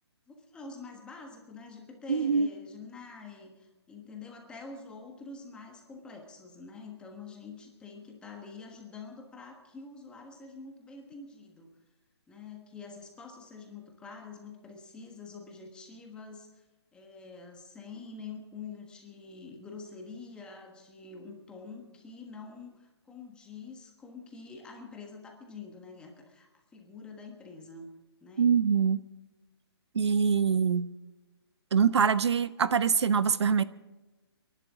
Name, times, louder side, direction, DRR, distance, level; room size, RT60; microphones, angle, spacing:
voice 1, 0.3-11.7 12.3-16.6 16.9-27.9 28.2-28.5, left 4 dB, 5° left, 2 dB, 1.4 m, -46 dB
voice 2, 2.1-2.5 28.4-29.0 29.9-30.9 31.7-33.6, right 6 dB, 80° right, 15 dB, 0.9 m, -24 dB
28.5 x 11.5 x 3.7 m, 1.1 s
hypercardioid pair, 165°, 14 cm